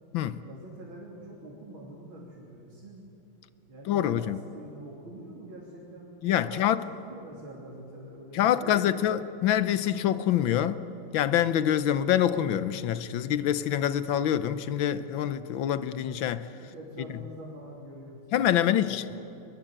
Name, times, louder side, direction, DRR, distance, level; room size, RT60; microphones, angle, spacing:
voice 1, 0.4-3.1 3.7-9.1 16.6-19.2, right 1 dB, 85° right, 4.0 m, -45 dB
voice 2, 3.9-4.4 6.2-6.8 8.3-10.8 11.1-16.5 18.3-19.0, left 10 dB, 75° left, 1.6 m, -26 dB
23.5 x 22.0 x 8.9 m
omnidirectional pair, 2.2 m